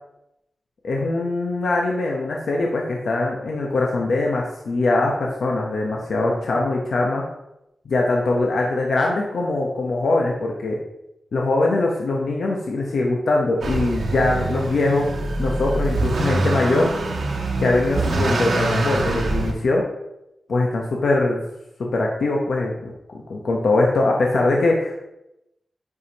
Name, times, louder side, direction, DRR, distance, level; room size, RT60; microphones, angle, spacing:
voice 1, 0.8-7.2 7.8-10.8 11.3-15.1 15.4-16.9 17.6-19.8 20.5-21.4 21.8-25.1, left 2 dB, 75° left, -1 dB, 0.9 m, -22 dB
Motor vehicle (road) / Accelerating revving vroom, 13.6-19.5, right 2 dB, 85° right, 1.2 m, -24 dB
9.4 x 4.9 x 2.9 m, 0.86 s
wide cardioid pair, 140°, 0 cm